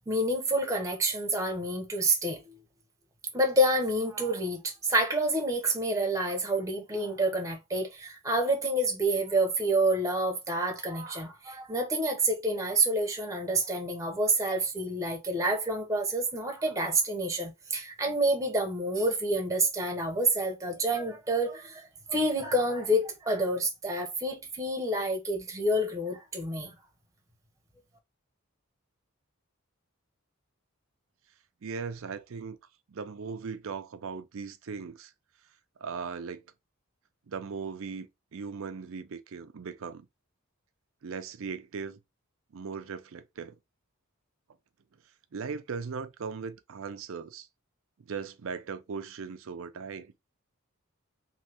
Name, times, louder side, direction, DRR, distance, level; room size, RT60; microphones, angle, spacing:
voice 1, 0.1-2.5 3.3-26.7, right 1 dB, 15° right, 0.7 m, -28 dB
voice 2, 31.6-32.6 32.9-35.1 35.8-36.4 37.3-40.1 41.0-42.0 42.5-43.6 45.3-47.5 48.0-50.1, right 5 dB, 65° right, 0.5 m, -38 dB
3.1 x 2.8 x 2.8 m
head